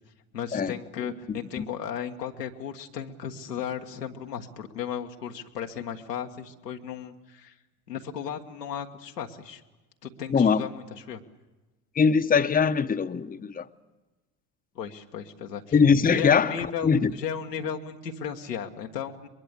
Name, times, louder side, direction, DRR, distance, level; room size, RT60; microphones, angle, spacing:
voice 1, 0.3-7.5 7.9-9.6 10.0-11.2 14.7-15.6 16.1-19.3, left 8 dB, 90° left, 1.5 m, -35 dB
voice 2, 1.3-1.6 10.3-10.7 11.9-13.7 15.7-17.1, left 6 dB, 20° left, 0.9 m, -22 dB
23.0 x 22.0 x 8.2 m
hypercardioid pair, 65°, 47 cm